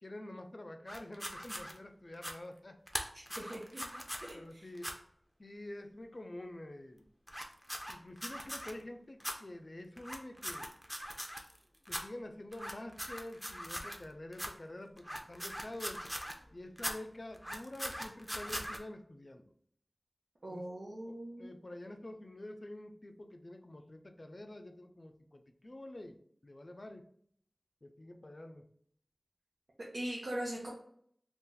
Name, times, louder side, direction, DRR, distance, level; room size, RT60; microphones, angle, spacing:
voice 1, 0.0-2.8 4.3-5.0 5.4-7.1 7.9-10.7 11.9-16.0 16.5-19.5 20.5-20.7 21.1-27.1 27.8-28.7, left 1 dB, 55° left, 6 dB, 0.4 m, -48 dB
sound 1, 0.9-1.7 2.1-2.3 2.9-4.3 4.8-4.9 7.3-8.7 9.2-9.3 10.0-11.6 11.9-12.0 12.5-14.0 14.3-14.5 15.0-16.4 16.8-16.9 17.3-18.8, equal, ahead, 0.6 m, -41 dB
voice 2, 3.4-3.8 4.5-4.7 20.4-21.5 29.8-30.7, right 1 dB, 80° right, -5 dB, 0.7 m, -40 dB
2.7 x 2.4 x 3.8 m, 0.64 s
wide cardioid pair, 40°, 0 cm